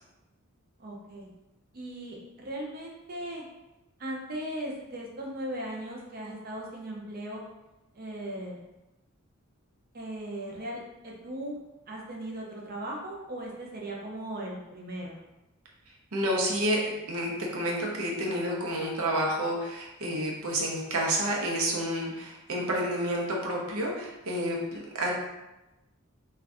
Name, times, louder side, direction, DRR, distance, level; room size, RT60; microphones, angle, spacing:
voice 1, 0.8-1.3 1.7-3.4 4.0-7.4 7.9-8.6 9.9-11.6 11.9-15.2, right 1 dB, 40° right, -2 dB, 0.6 m, -38 dB
voice 2, 16.1-25.1, right 1 dB, 80° right, -2 dB, 0.7 m, -29 dB
2.5 x 2.3 x 3.4 m, 0.99 s
head